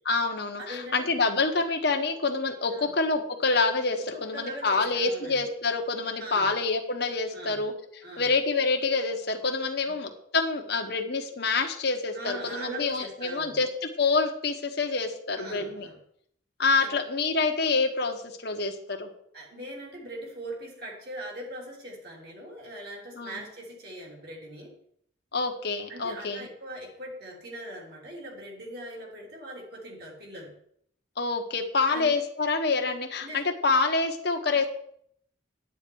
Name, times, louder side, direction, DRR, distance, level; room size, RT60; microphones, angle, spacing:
voice 1, 0.0-7.7 8.2-13.7 14.0-15.9 16.6-19.1 23.2-23.4 25.3-26.5 31.2-34.7, left 4 dB, 55° left, 4 dB, 1.4 m, -27 dB
voice 2, 0.6-1.1 2.7-2.9 4.0-5.5 6.2-6.5 7.3-7.6 8.0-8.3 9.8-9.9 12.1-13.6 15.4-16.0 16.7-17.0 19.3-24.8 25.9-30.5 31.9-32.2 33.2-33.5 34.5-34.6, right 1 dB, 50° right, -2 dB, 3.3 m, -41 dB
10.5 x 9.1 x 4.7 m, 0.67 s
head